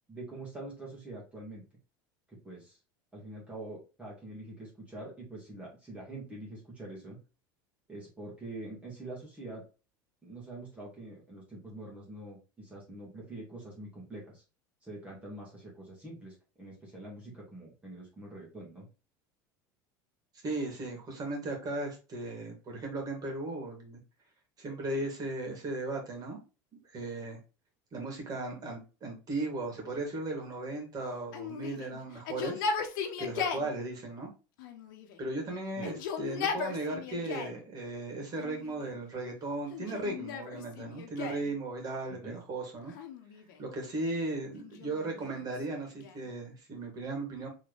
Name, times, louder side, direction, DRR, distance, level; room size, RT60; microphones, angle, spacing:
voice 1, 0.1-1.6 2.3-2.8 3.1-7.2 7.9-9.6 10.2-14.4 14.8-18.9 35.8-35.9 42.2-42.4, right 2 dB, 10° right, -4 dB, 2.3 m, -45 dB
voice 2, 20.4-24.0 24.6-26.4 26.8-27.4 27.9-32.7 33.2-34.3 35.2-42.9 43.6-47.5, right 2 dB, 35° right, 2 dB, 2.3 m, -36 dB
Yell, 31.3-33.7 34.6-35.3 35.7-37.6 38.3-39.0 39.7-41.5 42.9-43.7 44.6-46.3, left 6 dB, 75° left, 1.0 m, -37 dB
4.2 x 3.7 x 3.4 m, 0.32 s
supercardioid pair, 95°, 11 cm